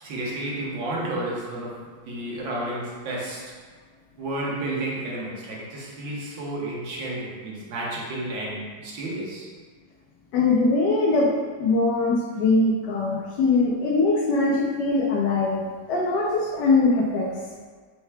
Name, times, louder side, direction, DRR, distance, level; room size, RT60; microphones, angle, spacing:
voice 1, 0.0-1.8 2.1-3.5 4.2-9.5, right 1 dB, 75° right, -4 dB, 1.6 m, -31 dB
voice 2, 10.3-11.3 11.6-17.3, left 3 dB, 75° left, -2 dB, 1.0 m, -22 dB
4.6 x 2.2 x 4.4 m, 1.5 s
omnidirectional pair, 2.2 m